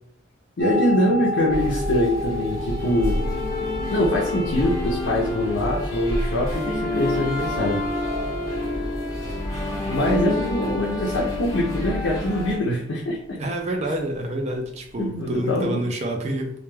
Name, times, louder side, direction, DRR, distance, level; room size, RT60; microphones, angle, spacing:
voice 1, 0.6-3.2 3.9-7.8 9.9-13.4 15.0-15.8, left 1 dB, 65° left, -4 dB, 0.5 m, -23 dB
sound 1, 0.6-15.3, left 1 dB, 85° right, 0.9 m, -34 dB
sound 2, 1.5-12.6, left 1 dB, 15° left, 0.8 m, -28 dB
voice 2, 13.4-16.6, right 1 dB, 35° right, 3 dB, 0.4 m, -27 dB
2.2 x 2.1 x 3.1 m, 0.68 s
head